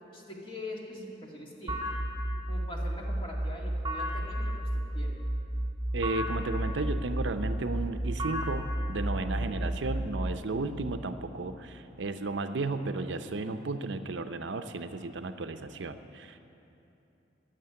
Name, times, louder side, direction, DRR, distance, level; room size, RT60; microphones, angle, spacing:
voice 1, 0.1-2.0 2.5-5.3 9.3-9.7, left 1 dB, 30° left, -2 dB, 2.1 m, -43 dB
sound 1, 1.7-10.4, right 1 dB, 15° right, 2.0 m, -32 dB
voice 2, 5.9-16.4, right 3 dB, 75° right, 9 dB, 0.6 m, -34 dB
16.0 x 7.3 x 9.6 m, 2.9 s
head